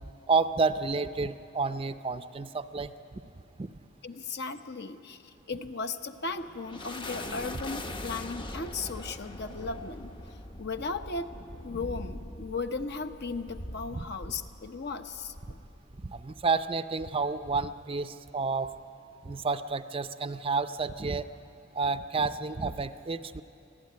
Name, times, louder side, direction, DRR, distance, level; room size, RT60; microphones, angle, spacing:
voice 1, 0.3-3.2 3.6-3.7 13.9-14.0 16.0-18.7 19.2-21.3 21.7-23.4, right 4 dB, 25° right, 11 dB, 0.5 m, -30 dB
voice 2, 4.0-10.1 10.6-11.3 11.6-15.6, left 4 dB, 55° left, 8 dB, 0.9 m, -36 dB
sound 1, 6.1-16.7, left 1 dB, 25° left, 0.7 m, -42 dB
24.0 x 15.0 x 9.5 m, 2.8 s
head